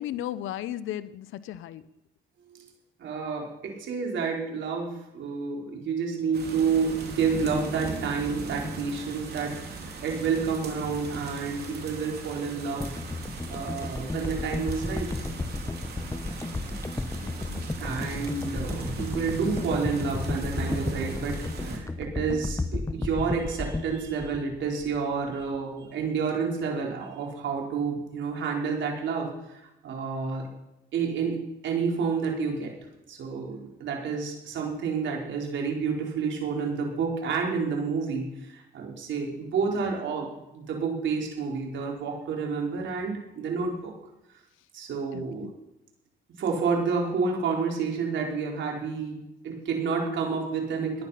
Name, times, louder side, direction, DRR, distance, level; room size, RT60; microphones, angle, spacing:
voice 1, 0.0-1.8 17.2-17.6 45.1-45.5, left 12 dB, 85° left, 16 dB, 0.7 m, -35 dB
voice 2, 3.0-12.9 13.5-15.3 17.8-30.5 30.9-32.7 33.1-43.9 44.7-45.5 46.4-51.0, right 5 dB, 70° right, 0 dB, 4.4 m, -29 dB
sound 1, 6.3-21.8, right 3 dB, 55° right, 3.6 m, -38 dB
sound 2, 12.8-25.1 25.4-25.6, left 2 dB, 15° left, 0.9 m, -33 dB
17.5 x 11.0 x 5.8 m, 0.90 s
cardioid pair, 90°, 20 cm